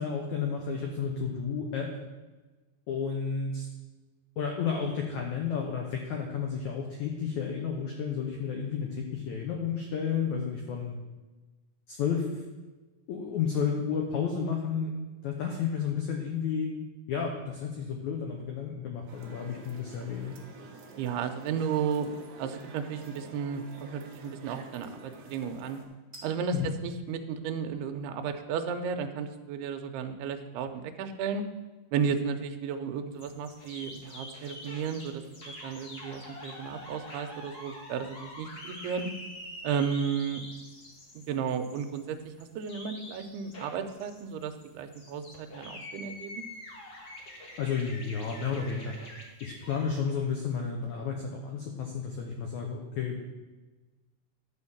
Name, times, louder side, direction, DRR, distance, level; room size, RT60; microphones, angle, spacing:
voice 1, 0.0-1.9 2.9-3.7 4.4-11.0 11.9-12.4 13.1-14.9 15.2-16.7 17.1-20.4 26.5-26.7 47.6-49.0 49.4-53.2, left 6 dB, 75° left, 1 dB, 1.7 m, -32 dB
sound 1, 19.1-25.8, right 4 dB, 60° right, 2.0 m, -50 dB
sound 2, 20.0-20.3 20.7-21.2 23.0-23.5 24.8-25.2 26.1-26.6, right 1 dB, 30° right, 0.9 m, -52 dB
voice 2, 21.0-25.8 26.2-31.4 31.9-39.1 39.6-40.4 41.1-46.4, right 6 dB, 85° right, 6 dB, 2.7 m, -33 dB
sound 3, 33.2-49.8, left 1 dB, 50° left, 1.1 m, -45 dB
11.5 x 4.5 x 7.2 m, 1.2 s
omnidirectional pair, 4.6 m